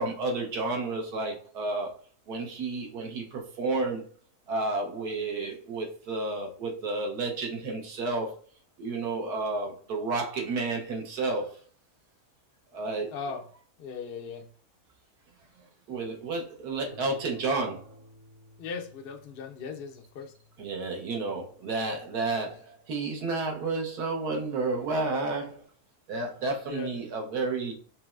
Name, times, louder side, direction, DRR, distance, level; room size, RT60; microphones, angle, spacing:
voice 1, 0.0-1.9 2.3-4.0 4.5-8.4 8.8-11.6 12.7-13.1 15.9-17.9 20.6-25.6 26.1-27.7, right 3 dB, 85° right, 1 dB, 1.4 m, -31 dB
voice 2, 13.1-13.4 13.8-14.5 18.6-20.3 26.7-26.9, left 5 dB, 70° left, 3 dB, 0.5 m, -38 dB
sound 1, 16.9-24.0, equal, 50° right, 0.8 m, -57 dB
5.9 x 3.1 x 2.4 m, 0.43 s
omnidirectional pair, 1.6 m